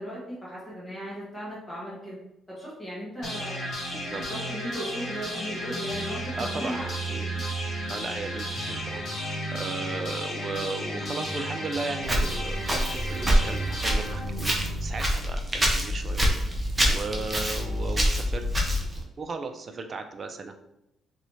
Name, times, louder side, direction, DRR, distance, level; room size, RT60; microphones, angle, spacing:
voice 1, 0.0-2.2 2.5-3.7 4.1-6.9 8.4-8.6, equal, 20° left, -7 dB, 1.3 m, -37 dB
sound 1, 3.2-15.2, equal, 60° left, 1.5 m, -33 dB
voice 2, 3.9-4.2 6.4-7.3 7.9-16.5 16.9-18.4 19.2-20.5, right 3 dB, 40° right, 7 dB, 0.4 m, -36 dB
Walk footsteps, 12.0-19.0, equal, 20° right, 0.7 m, -26 dB
3.1 x 2.7 x 3.1 m, 0.86 s
cardioid pair, 90°, 0 cm